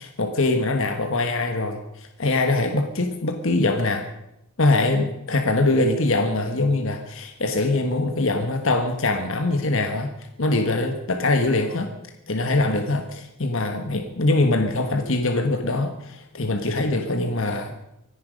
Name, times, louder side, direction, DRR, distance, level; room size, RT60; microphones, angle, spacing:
voice 1, 0.0-4.1 4.6-10.1 10.4-11.9 12.3-17.7, left 2 dB, 60° left, 5 dB, 1.5 m, -23 dB
24.5 x 10.5 x 5.3 m, 0.85 s
head